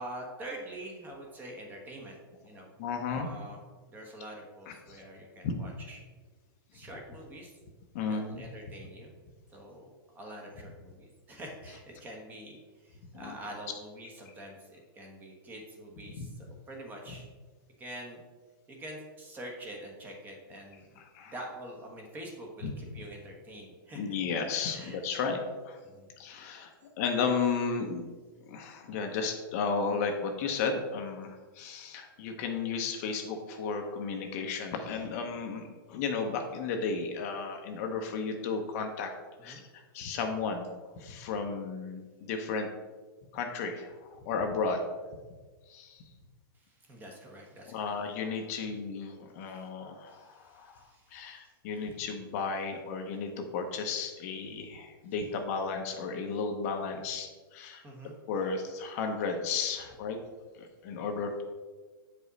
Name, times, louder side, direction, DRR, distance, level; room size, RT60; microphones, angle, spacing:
voice 1, 0.0-2.7 3.1-3.6 3.9-6.0 6.7-7.5 8.1-9.1 9.5-17.3 17.8-18.2 18.7-21.0 21.2-24.2 24.7-25.0 25.8-26.1 39.4-39.6 46.5-48.0 48.6-48.7 49.4-49.7 50.1-51.5 57.8-58.1, right 1 dB, 15° right, 1 dB, 1.2 m, -46 dB
voice 2, 2.8-3.3 4.7-5.0 5.4-5.5 7.9-8.4 13.1-13.3 16.2-16.3 21.0-21.3 22.6-22.7 23.9-25.8 26.2-28.0 28.5-39.1 39.4-40.7 41.0-42.7 43.3-44.8 45.7-46.0 47.7-50.8 51.1-57.8 58.3-60.2 60.5-61.4, left 5 dB, 40° left, 4 dB, 0.9 m, -34 dB
8.0 x 5.1 x 4.1 m, 1.4 s
hypercardioid pair, 160°, 12 cm